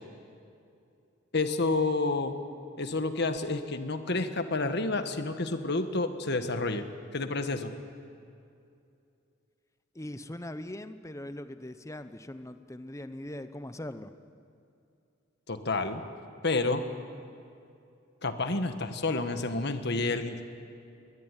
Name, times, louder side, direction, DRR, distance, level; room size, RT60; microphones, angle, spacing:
voice 1, 1.3-2.3 2.8-6.8 7.1-7.7 15.5-16.0 16.4-16.9 18.2-20.4, left 3 dB, 55° left, 8 dB, 1.6 m, -29 dB
voice 2, 9.9-14.1, left 1 dB, 15° left, 11 dB, 0.8 m, -41 dB
22.0 x 17.5 x 10.0 m, 2.6 s
head